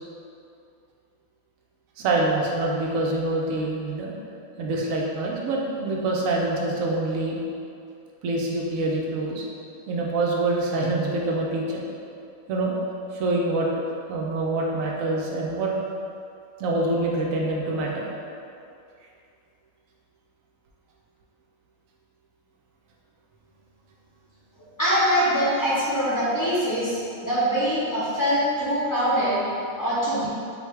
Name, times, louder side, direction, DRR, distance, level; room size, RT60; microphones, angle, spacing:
voice 1, 2.0-4.1 4.6-7.4 8.2-9.4 9.9-11.8 12.5-12.8 13.1-15.7 16.6-18.1, right 2 dB, 75° right, -2 dB, 0.9 m, -25 dB
voice 2, 24.8-29.4 29.8-30.3, equal, 15° left, -11 dB, 0.7 m, -23 dB
4.9 x 2.6 x 3.2 m, 2.5 s
omnidirectional pair, 1.5 m